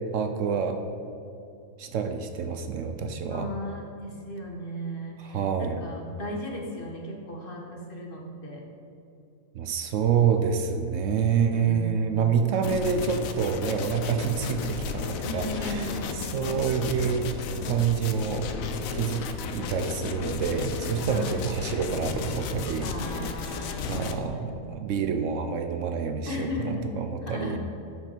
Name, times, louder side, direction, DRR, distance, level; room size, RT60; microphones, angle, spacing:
voice 1, 0.1-0.8 1.8-3.5 5.2-5.8 9.5-17.3 17.6-18.5 18.9-19.2 19.5-22.9 23.5-27.6, right 6 dB, 70° right, 7 dB, 0.9 m, -27 dB
voice 2, 3.3-8.6 11.5-12.5 15.2-16.5 21.0-21.4 22.8-24.6 26.2-26.9 27.2-27.6, left 1 dB, 40° left, 0 dB, 1.3 m, -36 dB
sound 1, 12.6-24.2, left 5 dB, 75° left, 1.1 m, -34 dB
11.5 x 5.2 x 4.4 m, 2.7 s
omnidirectional pair, 1.4 m